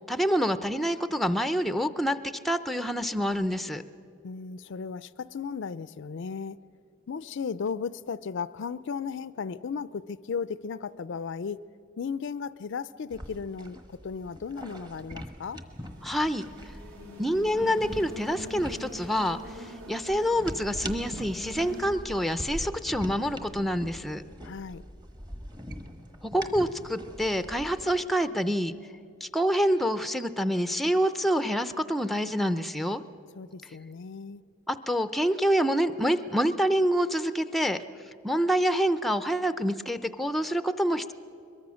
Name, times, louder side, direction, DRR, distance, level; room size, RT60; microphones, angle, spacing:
voice 1, 0.1-3.8 16.0-16.7 17.2-24.2 26.2-28.7 29.2-33.0 34.7-37.8 38.2-41.1, equal, ahead, 11 dB, 0.5 m, -27 dB
voice 2, 4.2-6.6 7.1-11.7 12.0-15.6 24.4-24.8 33.4-34.4, left 5 dB, 60° left, 16 dB, 0.4 m, -35 dB
sound 1, 13.1-28.0, equal, 20° right, 1.2 m, -42 dB
sound 2, 15.7-21.9, equal, 70° right, 3.4 m, -43 dB
22.5 x 22.0 x 6.3 m, 2.7 s
head